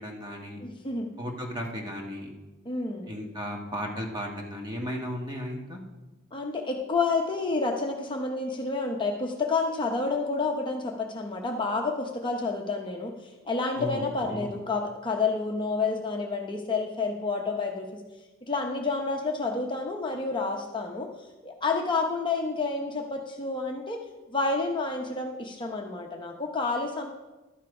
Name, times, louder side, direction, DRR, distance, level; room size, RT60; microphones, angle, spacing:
voice 1, 0.0-0.6 1.2-2.3 3.1-5.8 13.8-14.6, equal, 20° right, 1 dB, 1.4 m, -35 dB
voice 2, 0.6-1.1 2.7-3.1 6.3-13.1 13.5-18.0 18.4-21.1 21.4-24.0 24.3-27.1, left 3 dB, 25° left, 1 dB, 0.8 m, -29 dB
11.5 x 7.3 x 4.8 m, 1.1 s
head